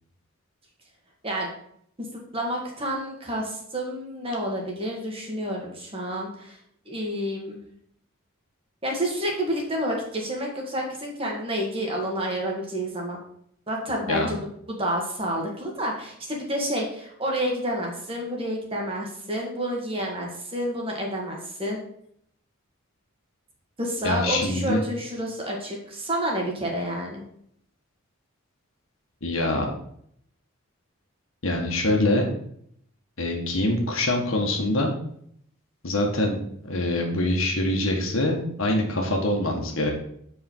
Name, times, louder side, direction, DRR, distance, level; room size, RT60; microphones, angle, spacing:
voice 1, 2.3-6.6 6.8-7.6 8.8-13.2 13.7-21.8 23.8-27.2, equal, 25° right, 0 dB, 1.8 m, -29 dB
voice 2, 24.0-24.8 29.2-29.7 31.4-32.3 33.2-34.9 35.8-39.9, left 1 dB, 75° left, 1 dB, 1.6 m, -24 dB
7.8 x 4.9 x 4.6 m, 0.68 s
head